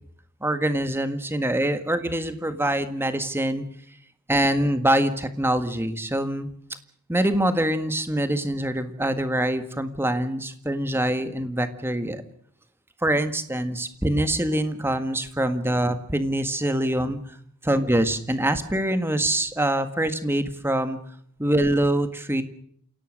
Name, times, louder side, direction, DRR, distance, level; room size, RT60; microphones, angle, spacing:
voice 1, 0.4-3.6 4.3-6.5 7.1-12.2 13.0-17.2 17.6-21.0 21.4-22.4, right 1 dB, 10° right, 9 dB, 1.7 m, -24 dB
28.5 x 17.5 x 6.5 m, 0.62 s
head